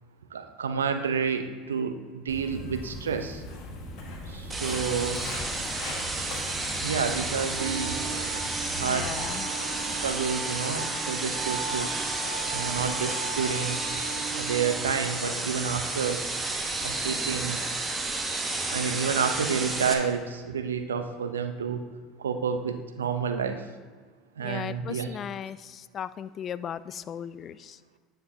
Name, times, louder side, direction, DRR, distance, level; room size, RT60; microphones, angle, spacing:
voice 1, 0.3-3.4 4.3-5.2 6.8-8.0 8.7-9.1 10.0-11.9 12.5-13.8 14.3-16.2 16.8-17.6 18.7-21.8 22.2-23.7 24.4-25.1, right 6 dB, 90° right, 8 dB, 0.5 m, -29 dB
Walk footsteps, 2.3-9.3, left 1 dB, 60° left, 1.6 m, -39 dB
sound 1, 4.5-19.9, right 2 dB, 20° right, 1.1 m, -31 dB
Wind instrument woodwind instrument, 7.5-15.1, right 4 dB, 70° right, 1.1 m, -38 dB
voice 2, 8.8-9.5 24.4-27.8, left 9 dB, 40° left, 16 dB, 0.3 m, -37 dB
9.9 x 6.9 x 2.7 m, 1.5 s
hypercardioid pair, 75°, 0 cm